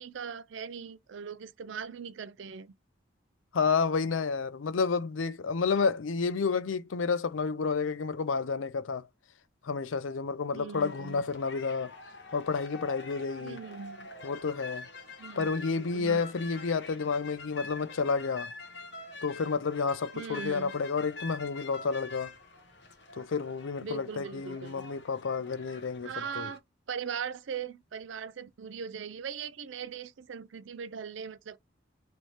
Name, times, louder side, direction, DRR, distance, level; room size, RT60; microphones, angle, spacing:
voice 1, 0.0-2.7 10.5-11.2 13.4-14.1 15.2-16.2 20.1-20.7 23.8-24.9 26.0-26.6 26.9-31.6, right 6 dB, 75° right, 0.4 m, -40 dB
voice 2, 3.5-9.1 9.6-11.9 12.3-13.6 14.2-14.9 15.4-18.5 19.2-22.3 23.2-26.5, left 5 dB, 85° left, 0.5 m, -30 dB
sound 1, 10.7-26.6, left 3 dB, 60° left, 1.0 m, -46 dB
3.4 x 3.1 x 4.0 m
head